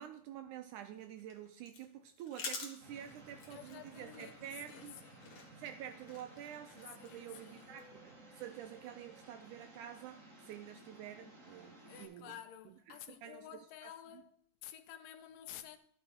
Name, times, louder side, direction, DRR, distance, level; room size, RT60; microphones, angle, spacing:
voice 1, 0.0-5.0 5.6-12.4 12.7-14.2, right 10 dB, 80° right, 1.8 m, -49 dB
sound 1, 0.9-7.8, left 4 dB, 50° left, 2.1 m, -50 dB
Black Hole, 2.8-12.1, right 2 dB, 30° right, 1.8 m, -57 dB
voice 2, 3.5-5.3 7.0-7.8 11.8-15.8, left 11 dB, 80° left, 2.5 m, -52 dB
12.0 x 5.7 x 4.4 m
omnidirectional pair, 4.0 m